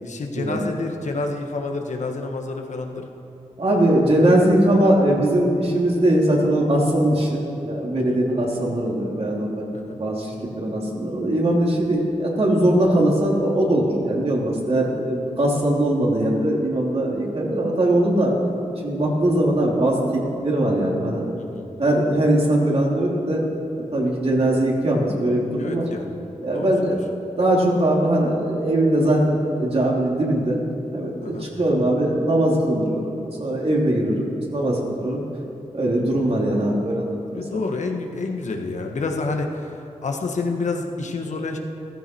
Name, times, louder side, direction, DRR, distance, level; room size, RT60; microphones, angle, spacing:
voice 1, 0.0-3.1 4.2-4.3 7.9-8.2 9.7-10.0 21.4-21.7 25.6-26.2 26.5-27.0 31.2-31.5 36.1-36.2 37.3-39.8 40.0-41.6, left 3 dB, 70° left, 3 dB, 1.4 m, -29 dB
voice 2, 3.6-18.3 18.8-21.3 21.8-23.4 23.9-25.9 26.4-27.0 27.4-30.6 30.9-33.0 33.4-35.2 35.7-37.6, right 1 dB, 50° right, -2 dB, 3.0 m, -21 dB
15.0 x 14.5 x 4.6 m, 2.7 s
cardioid pair, 75°, 13 cm